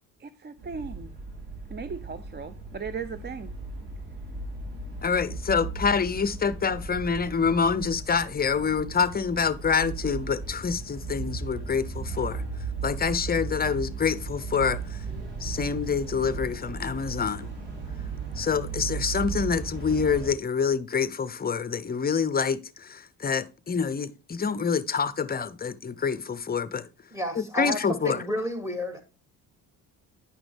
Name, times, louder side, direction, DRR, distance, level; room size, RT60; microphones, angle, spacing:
voice 1, 0.2-1.1 1.7-3.5, right 5 dB, 25° right, 0.6 m, -37 dB
sound 1, 0.6-20.3, right 4 dB, 80° right, 3.3 m, -36 dB
voice 2, 5.0-12.4 12.8-15.0 15.4-17.5 18.4-26.9 27.4-28.2, left 6 dB, 25° left, 0.6 m, -26 dB
voice 3, 27.1-29.0, equal, 10° right, 2.3 m, -31 dB
9.8 x 5.9 x 3.4 m
supercardioid pair, 75°, 39 cm